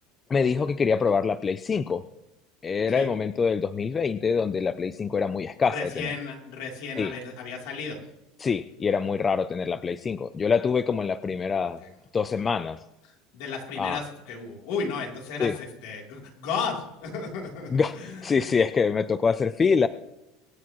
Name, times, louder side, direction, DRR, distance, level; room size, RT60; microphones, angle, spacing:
voice 1, 0.3-2.0 2.6-6.1 7.0-7.2 8.4-11.8 12.1-12.8 13.8-14.0 15.4-15.6 17.7-19.9, left 5 dB, 20° left, 13 dB, 0.3 m, -25 dB
voice 2, 5.7-8.1 11.8-11.9 13.3-18.4, left 5 dB, 65° left, 0 dB, 3.2 m, -34 dB
24.5 x 8.5 x 3.0 m, 0.93 s
cardioid pair, 155°, 0 cm